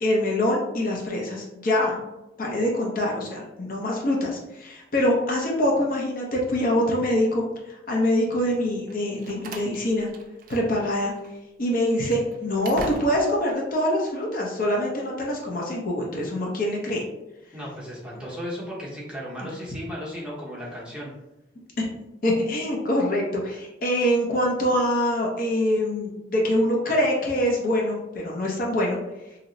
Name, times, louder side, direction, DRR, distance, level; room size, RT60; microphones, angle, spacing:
voice 1, 0.0-2.0 2.4-10.1 10.5-11.1 11.6-17.0 21.8-21.9 22.2-29.0, left 1 dB, 50° left, -2 dB, 0.6 m, -24 dB
Slam, 8.9-10.9 11.2-11.3 11.8-13.4, right 3 dB, 50° right, 0.4 m, -41 dB
voice 2, 17.5-21.1, equal, 5° right, -6 dB, 0.8 m, -35 dB
2.8 x 2.0 x 3.8 m, 0.94 s
head